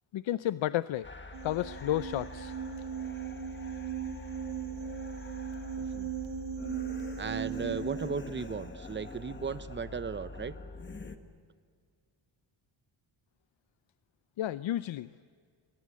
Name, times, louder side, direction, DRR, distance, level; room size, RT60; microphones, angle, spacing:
voice 1, 0.1-1.1 1.4-2.5 14.4-15.1, left 13 dB, 70° left, 15 dB, 0.6 m, -31 dB
sound 1, 1.0-11.2, left 3 dB, 25° left, 1.5 m, -44 dB
sound 2, 1.3-8.1, right 8 dB, 70° right, 1.4 m, -38 dB
voice 2, 5.8-6.1 7.2-10.6, right 5 dB, 25° right, 13 dB, 0.8 m, -36 dB
29.0 x 22.0 x 8.5 m, 2.1 s
wide cardioid pair, 145°, 48 cm